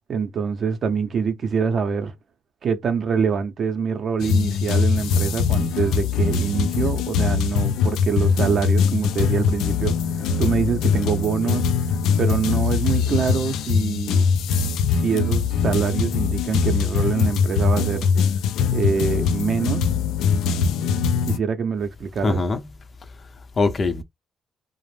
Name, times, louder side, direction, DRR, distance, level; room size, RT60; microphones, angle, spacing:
voice 1, 0.1-2.1 2.6-14.3 15.0-18.1 18.7-19.8 21.2-22.4, right 6 dB, 55° right, 0.6 m, -25 dB
sound 1, 4.2-21.4, left 6 dB, 90° left, 0.3 m, -22 dB
voice 2, 22.2-22.8 23.2-24.0, left 3 dB, 40° left, 0.6 m, -23 dB
2.5 x 2.0 x 3.1 m
cardioid pair, 90°, 0 cm